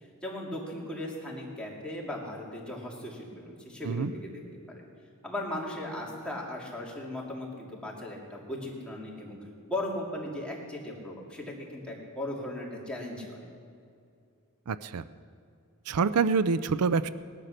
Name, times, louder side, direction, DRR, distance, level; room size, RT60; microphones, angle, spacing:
voice 1, 0.2-4.4 4.8-4.9 5.2-9.4 9.7-13.4, left 1 dB, 5° left, -4 dB, 2.9 m, -37 dB
voice 2, 14.7-15.0 15.9-17.1, right 5 dB, 80° right, 14 dB, 0.5 m, -26 dB
18.5 x 11.5 x 6.6 m, 2.4 s
head